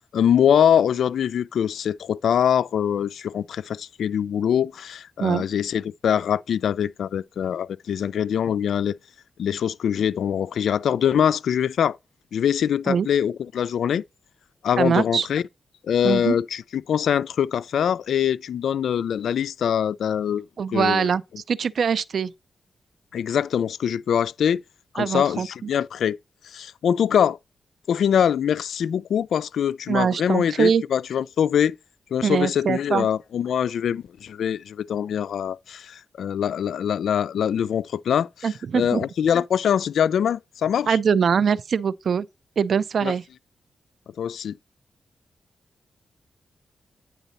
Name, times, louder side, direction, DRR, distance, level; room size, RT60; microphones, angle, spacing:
voice 1, 0.1-9.0 9.4-12.0 12.3-14.0 14.6-15.4 15.9-21.1 23.1-24.6 24.9-26.2 26.5-27.4 27.9-31.8 32.1-41.0 43.0-43.1 44.2-44.6, left 8 dB, 85° left, 0.3 m, -23 dB
voice 2, 14.8-15.3 16.0-16.4 20.6-21.2 21.5-22.3 25.0-25.5 29.9-30.8 32.2-33.1 38.4-39.0 40.9-42.3 42.6-43.2, right 6 dB, 70° right, 0.4 m, -22 dB
9.1 x 3.8 x 4.1 m
cardioid pair, 65°, 0 cm